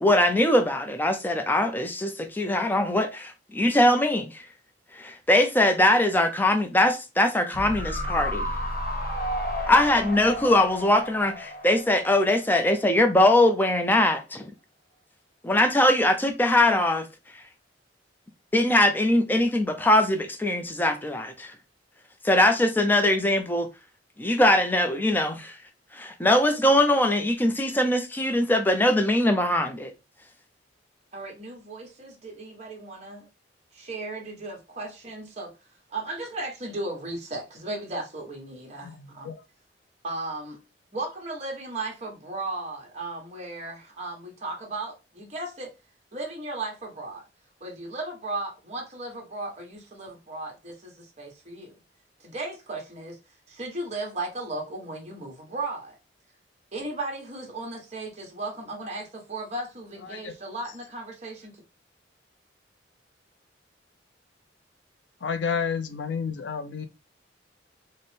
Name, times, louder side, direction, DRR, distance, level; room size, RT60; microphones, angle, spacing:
voice 1, 0.0-4.3 5.0-8.5 9.7-14.5 15.4-17.1 18.5-21.5 22.2-23.7 24.2-25.6 25.9-29.9, left 1 dB, 10° left, 0.4 m, -22 dB
sound 1, 7.5-12.8 13.1-13.2, equal, 55° left, 1.0 m, -32 dB
voice 2, 31.1-33.3 33.7-35.5 35.9-39.3 40.0-40.6 40.9-45.7 46.1-47.2 47.6-51.8 52.2-53.2 53.5-55.9 56.7-61.6, right 2 dB, 35° right, 1.2 m, -36 dB
voice 3, 38.8-39.4 60.1-60.3 65.2-66.9, left 6 dB, 75° left, 0.5 m, -30 dB
4.2 x 2.1 x 3.2 m
head